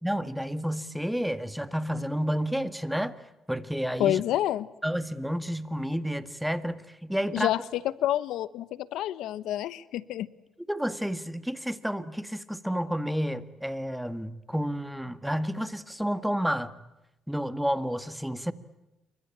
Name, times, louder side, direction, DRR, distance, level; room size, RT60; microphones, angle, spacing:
voice 1, 0.0-3.2 3.5-4.2 4.8-7.5 10.7-16.7 17.3-18.5, equal, ahead, 13 dB, 1.8 m, -30 dB
voice 2, 4.0-4.7 7.3-7.6 8.0-10.3, left 12 dB, 85° left, 18 dB, 1.0 m, -28 dB
28.0 x 24.0 x 8.7 m, 0.94 s
cardioid pair, 90°, 0 cm